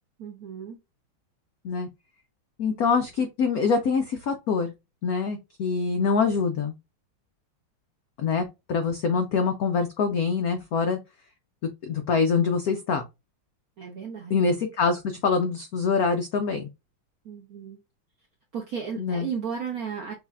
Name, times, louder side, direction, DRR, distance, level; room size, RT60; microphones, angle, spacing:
voice 1, 0.2-0.8 13.8-14.6 17.2-17.8 18.5-20.1, right 7 dB, 60° right, 1.0 m, -34 dB
voice 2, 2.6-4.7 5.0-6.7 8.2-11.0 11.8-13.0 14.3-16.7 19.0-19.3, left 5 dB, 90° left, 0.8 m, -25 dB
6.4 x 2.7 x 2.4 m
omnidirectional pair, 2.3 m